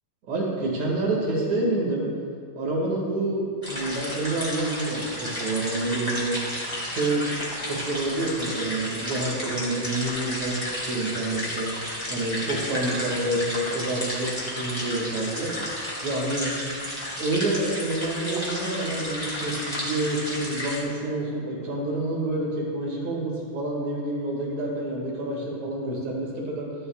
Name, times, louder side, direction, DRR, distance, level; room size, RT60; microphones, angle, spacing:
voice 1, 0.3-2.1 2.5-6.4 6.9-11.7 12.1-15.5 16.0-16.5 17.2-26.7, right 2 dB, 50° right, -3 dB, 2.5 m, -28 dB
sound 1, 3.6-20.8, left 1 dB, 10° left, 1.8 m, -32 dB
15.5 x 12.0 x 2.3 m, 2.3 s
omnidirectional pair, 5.3 m